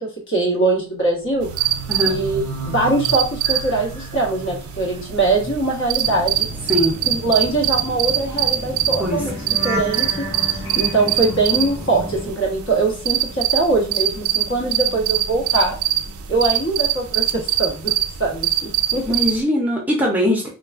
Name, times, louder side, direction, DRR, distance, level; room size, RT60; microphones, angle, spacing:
voice 1, 0.0-1.5 2.0-6.5 7.1-9.4 9.6-10.2 10.5-15.8 16.3-17.9 18.2-19.0, right 2 dB, 55° left, -1 dB, 1.1 m, -22 dB
sound 1, 1.1-13.4 13.7-15.8 16.1-16.4, right 1 dB, 90° left, 1.6 m, -34 dB
sound 2, 1.4-19.4, right 12 dB, 75° right, 0.4 m, -24 dB
sound 3, 6.0-12.3, equal, 15° left, 1.0 m, -36 dB
voice 2, 19.1-20.5, equal, 5° right, -2 dB, 0.5 m, -20 dB
3.3 x 2.3 x 2.3 m, 0.35 s
head